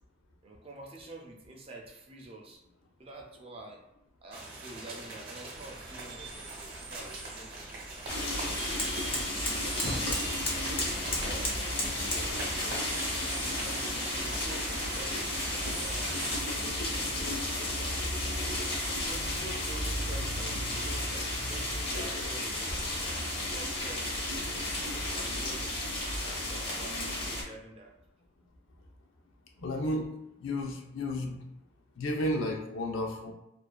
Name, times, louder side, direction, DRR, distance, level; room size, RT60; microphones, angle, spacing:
voice 1, 0.4-2.6 3.0-3.8 4.2-7.8 8.4-10.1 11.2-12.8 13.2-13.9 14.2-18.3 18.9-25.8 26.2-27.9, right 2 dB, 30° right, 1 dB, 0.4 m, -48 dB
sound 1, 4.3-16.4, right 2 dB, 55° right, 0.8 m, -41 dB
sound 2, 5.5-12.3, left 1 dB, 25° left, 0.5 m, -38 dB
sound 3, 8.1-27.4, left 1 dB, 55° left, 0.8 m, -33 dB
voice 2, 29.6-30.1 30.4-31.4 32.0-33.3, left 1 dB, 75° left, 2 dB, 0.4 m, -32 dB
2.5 x 2.2 x 2.3 m, 0.84 s
head